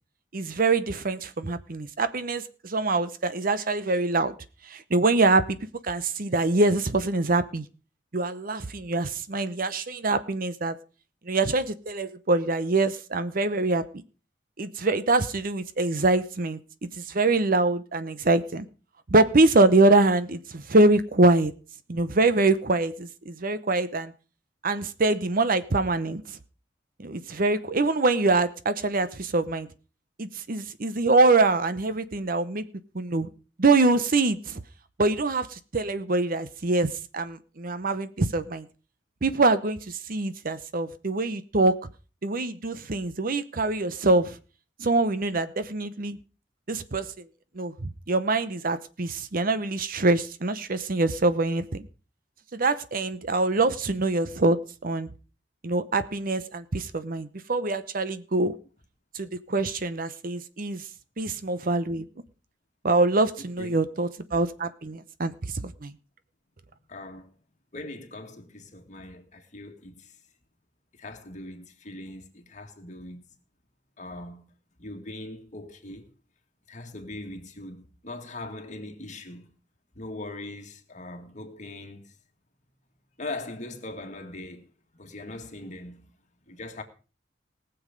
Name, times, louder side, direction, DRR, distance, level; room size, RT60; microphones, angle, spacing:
voice 1, 0.3-4.3 4.7-5.6 5.8-7.6 8.1-10.8 11.3-14.0 14.6-16.6 17.0-18.7 19.1-21.5 21.9-24.1 24.6-26.2 27.0-29.7 30.2-32.6 32.9-33.3 33.6-34.6 35.0-36.9 37.1-38.7 39.2-41.7 42.2-44.4 44.8-46.2 46.7-47.1 47.5-51.8 52.5-55.1 55.6-58.5 59.1-60.8 61.2-62.0 62.8-65.3 65.6-65.9, right 2 dB, 50° right, 0.8 m, -24 dB
voice 2, 63.4-63.8 66.9-67.3 67.7-70.2 70.9-73.4 74.0-74.5 74.8-76.1 76.7-79.6 79.9-82.2 83.2-84.7 84.9-86.1 86.5-86.8, left 2 dB, 40° left, 2.1 m, -40 dB
19.0 x 7.1 x 5.2 m
head